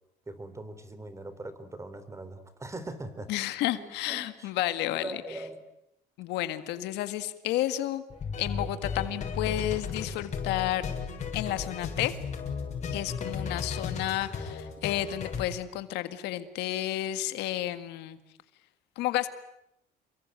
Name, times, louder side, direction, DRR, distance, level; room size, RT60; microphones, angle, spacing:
voice 1, 0.3-3.3 3.8-4.5 4.9-5.6 6.8-6.9, right 2 dB, 15° right, 12 dB, 3.8 m, -41 dB
voice 2, 3.3-5.4 6.2-8.0 8.4-10.9 11.3-12.2 12.9-18.2 19.0-19.3, left 14 dB, 90° left, 11 dB, 1.9 m, -31 dB
sound 1, 8.1-15.4, left 5 dB, 45° left, 7.0 m, -35 dB
28.5 x 23.0 x 9.1 m, 0.81 s
cardioid pair, 110°, 17 cm